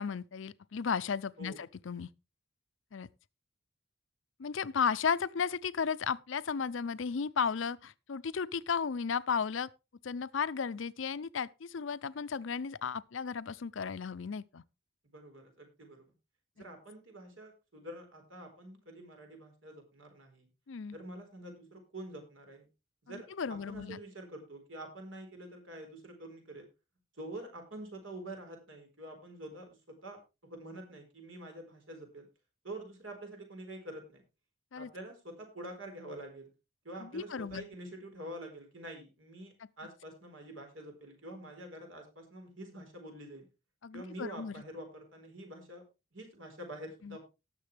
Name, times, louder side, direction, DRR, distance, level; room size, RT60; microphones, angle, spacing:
voice 1, 0.0-2.1 2.9-3.1 4.4-9.7 10.0-14.6 20.7-21.0 23.1-24.0 34.7-34.9 37.0-37.7 43.8-44.6 47.0-47.2, left 6 dB, 70° left, 0.5 m, -34 dB
voice 2, 15.1-16.1 16.6-20.5 20.9-22.7 23.0-26.7 27.2-32.3 32.6-34.2 34.7-36.5 36.8-43.5 43.9-45.9 46.1-47.2, right 1 dB, 75° right, 4.3 m, -47 dB
18.5 x 6.8 x 3.4 m
head